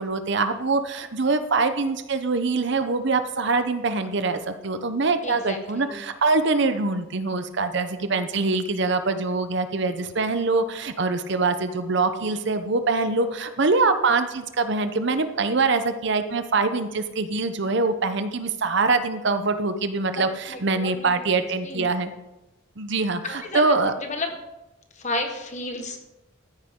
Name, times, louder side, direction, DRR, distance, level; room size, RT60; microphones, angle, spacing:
voice 1, 0.0-22.1 22.8-23.9, right 3 dB, 60° right, 9 dB, 0.8 m, -24 dB
voice 2, 5.2-6.0 20.5-21.2 21.6-21.9 23.2-23.6 24.0-24.3 24.9-26.0, left 2 dB, 35° left, 5 dB, 1.4 m, -32 dB
14.0 x 9.2 x 3.8 m, 0.97 s
head